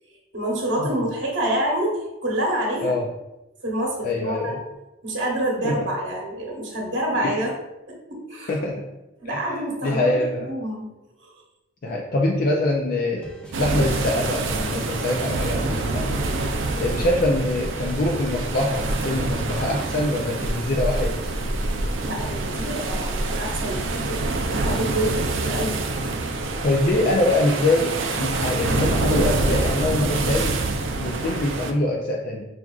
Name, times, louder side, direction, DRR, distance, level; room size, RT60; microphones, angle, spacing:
voice 1, 0.3-2.9 3.6-4.5 5.0-7.5 7.9-8.6 9.2-10.2 10.5-10.9 11.2-11.3 22.0-25.8, right 1 dB, 65° right, -2 dB, 1.0 m, -27 dB
voice 2, 4.0-4.6 5.6-5.8 7.2-7.4 8.5-8.8 9.3-9.5 9.8-10.5 11.8-13.3 13.6-16.1 16.8-21.2 26.6-30.6 30.9-32.4, left 2 dB, 50° left, 0 dB, 0.4 m, -24 dB
sound 1, 13.2-29.8, equal, 5° left, 0.7 m, -41 dB
sound 2, 13.5-31.7, right 2 dB, 80° right, 0.4 m, -26 dB
5.9 x 2.4 x 2.3 m, 0.99 s
head